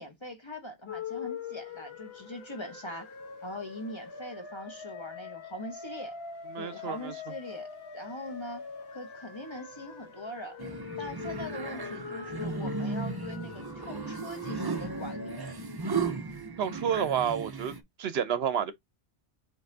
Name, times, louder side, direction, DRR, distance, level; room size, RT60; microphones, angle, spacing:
voice 1, 0.0-3.1 3.4-6.1 6.6-7.7 7.9-10.6 11.0-15.4 16.6-16.9, left 1 dB, 25° left, 1.1 m, -42 dB
sound 1, 0.9-15.6, left 6 dB, 60° left, 1.2 m, -43 dB
voice 2, 6.5-7.1 16.6-17.7 18.0-18.7, right 8 dB, 70° right, 0.8 m, -29 dB
sound 2, 10.6-17.8, right 4 dB, 30° right, 0.5 m, -35 dB
5.5 x 3.5 x 2.7 m
omnidirectional pair, 1.2 m